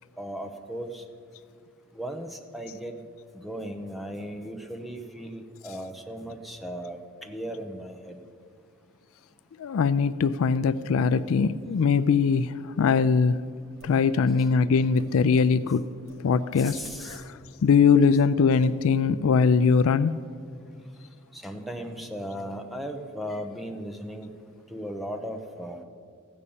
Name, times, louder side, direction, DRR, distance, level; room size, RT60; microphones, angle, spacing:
voice 1, 0.2-1.0 1.9-3.0 3.3-8.2 16.6-17.2 21.3-24.3 24.7-25.8, equal, ahead, 4 dB, 0.8 m, -37 dB
voice 2, 9.6-13.4 13.8-15.9 16.2-16.8 17.0-20.2, left 5 dB, 65° left, 15 dB, 0.4 m, -22 dB
sound 1, 13.8-13.9 14.4-14.5 15.0-15.1 16.1-16.2 16.5-17.2 17.7-17.8, right 1 dB, 70° right, 3.1 m, -50 dB
15.0 x 5.4 x 8.6 m, 2.2 s
head